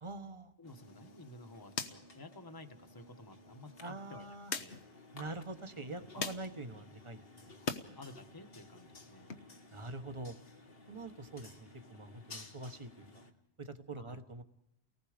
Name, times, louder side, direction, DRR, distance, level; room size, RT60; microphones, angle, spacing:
voice 1, 0.0-0.5 3.8-4.5 5.1-7.6 9.7-10.3 10.9-13.2 13.6-14.4, right 2 dB, 30° right, 8 dB, 1.3 m, -45 dB
sound 1, 0.6-13.3, left 2 dB, 60° left, 1.8 m, -56 dB
voice 2, 0.6-4.3 4.6-4.8 6.0-6.3 8.0-9.3 14.0-14.2, left 2 dB, 20° left, 7 dB, 1.2 m, -53 dB
sound 2, 0.7-7.9 8.2-9.4, left 5 dB, 80° left, 1.4 m, -45 dB
30.0 x 19.0 x 5.1 m, 0.86 s
omnidirectional pair, 1.1 m